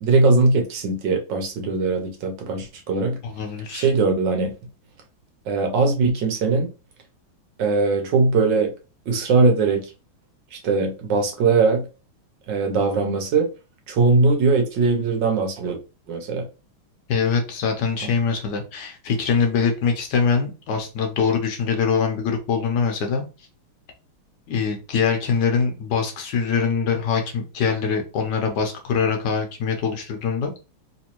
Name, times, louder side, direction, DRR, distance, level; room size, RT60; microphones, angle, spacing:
voice 1, 0.0-3.2 3.7-4.5 5.4-6.7 7.6-8.7 9.1-9.9 10.5-11.9 12.5-13.5 13.9-15.8 16.1-16.5, right 3 dB, 65° right, 1.4 m, -20 dB
voice 2, 3.2-3.9 17.1-23.2 24.5-30.5, left 5 dB, 65° left, 1.3 m, -23 dB
3.4 x 3.1 x 2.9 m
omnidirectional pair, 2.3 m